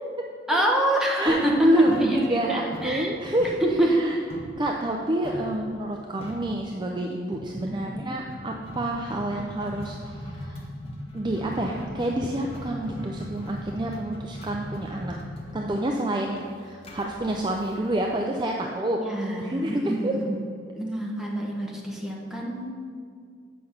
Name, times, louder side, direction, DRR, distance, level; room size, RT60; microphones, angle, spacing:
voice 1, 0.5-3.1 3.6-3.9 7.7-8.0 19.0-20.5 20.8-22.7, right 1 dB, 5° right, -3 dB, 1.2 m, -26 dB
voice 2, 1.0-4.2 4.6-10.6 11.1-15.2 15.5-19.0 19.4-20.2, right 1 dB, 25° right, 0 dB, 0.5 m, -28 dB
sound 1, 1.3-2.5 2.7-4.6 5.2-5.6 5.9-6.0 6.2-6.6 7.3-18.1, equal, 30° left, 1.3 m, -39 dB
7.8 x 5.6 x 6.5 m, 2.2 s
head